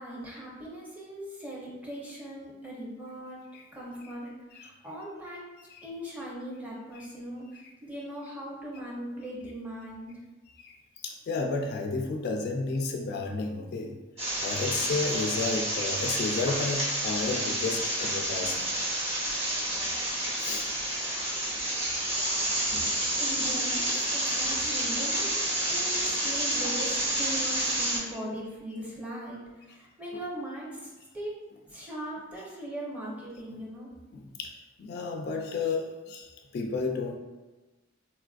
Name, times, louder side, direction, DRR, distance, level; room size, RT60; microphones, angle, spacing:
voice 1, 0.0-3.4 3.7-5.4 5.8-10.1 23.2-31.3 31.6-33.9, right 1 dB, 10° right, -5 dB, 0.6 m, -39 dB
voice 2, 11.0-14.0 14.4-18.7 20.4-21.0 21.4-21.5 22.7-23.1 30.1-30.2 33.5-33.6 34.1-34.5 34.8-37.2, left 3 dB, 55° left, 2 dB, 0.3 m, -32 dB
sound 1, 14.2-28.0, right 1 dB, 35° right, 1.0 m, -29 dB
3.8 x 2.4 x 2.3 m, 1.2 s
head